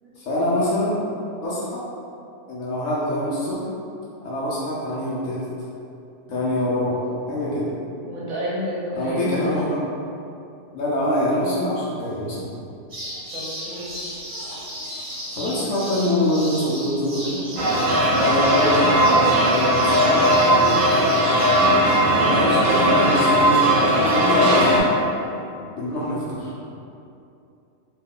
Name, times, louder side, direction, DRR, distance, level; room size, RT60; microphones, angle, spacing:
voice 1, 0.2-1.0 1.4-1.8 2.5-3.7 4.2-5.4 6.3-7.0 7.3-7.7 9.0-9.6 10.7-12.5 15.4-17.4 18.1-21.5 22.2-24.8 25.6-26.7, left 1 dB, 65° left, -7 dB, 0.9 m, -25 dB
voice 2, 8.1-9.7 13.3-14.0, equal, 65° right, -7 dB, 1.2 m, -31 dB
sound 1, 12.9-22.0, equal, 45° right, 1.2 m, -35 dB
sound 2, 17.6-24.8, equal, 90° right, 0.4 m, -18 dB
3.0 x 2.2 x 3.6 m, 2.7 s
omnidirectional pair, 1.7 m